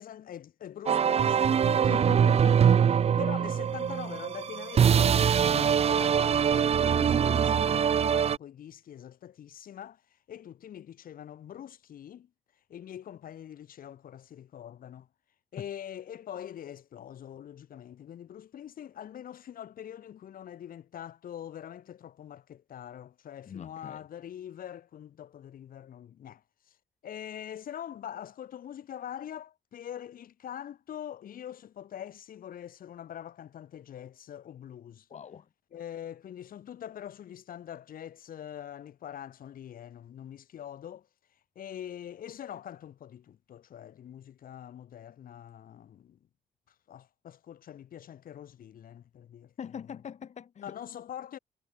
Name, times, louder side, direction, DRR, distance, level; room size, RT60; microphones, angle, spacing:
voice 1, 0.0-2.3 3.2-10.0 10.3-12.3 12.7-15.1 15.5-26.8 27.0-35.1 35.7-41.1 41.5-46.2 46.9-49.5 50.6-51.4, left 10 dB, 70° left, 3.3 m, -43 dB
sound 1, 0.9-8.4, right 8 dB, 45° right, 0.7 m, -23 dB
voice 2, 1.9-2.6 15.6-15.7 23.5-24.0 35.1-35.5 49.6-50.8, left 8 dB, 50° left, 1.4 m, -42 dB
cardioid pair, 135°, 15 cm